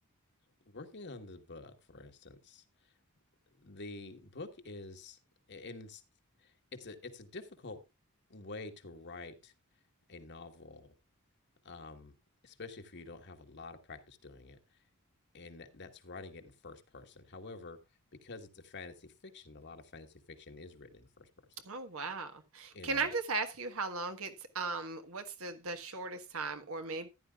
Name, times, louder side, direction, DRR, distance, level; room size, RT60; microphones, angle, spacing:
voice 1, 0.6-2.9 3.5-5.2 5.5-6.0 6.4-7.8 8.3-9.5 10.1-11.0 11.6-12.1 12.4-14.8 15.3-17.8 18.2-21.3 22.7-23.1, left 3 dB, 55° left, 1.4 m, -48 dB
voice 2, 21.7-27.1, right 4 dB, 70° right, 1.4 m, -37 dB
14.5 x 10.5 x 2.4 m
head